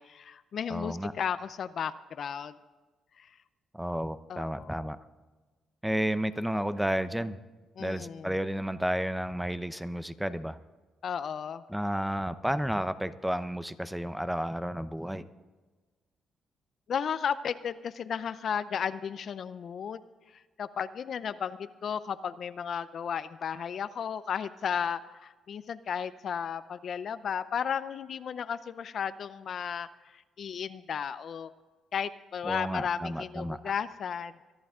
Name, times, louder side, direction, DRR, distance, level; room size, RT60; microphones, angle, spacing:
voice 1, 0.0-2.5 3.2-3.3 4.3-4.8 7.8-8.3 11.0-11.6 16.9-20.0 20.6-29.9 30.4-31.5 31.9-34.3, left 7 dB, 55° left, 13 dB, 0.6 m, -34 dB
voice 2, 0.7-1.1 3.7-5.0 5.8-7.4 7.8-10.6 11.7-15.3 32.4-33.6, equal, 5° right, 12 dB, 0.7 m, -32 dB
24.0 x 11.0 x 3.7 m, 1.3 s
cardioid pair, 90°, 0 cm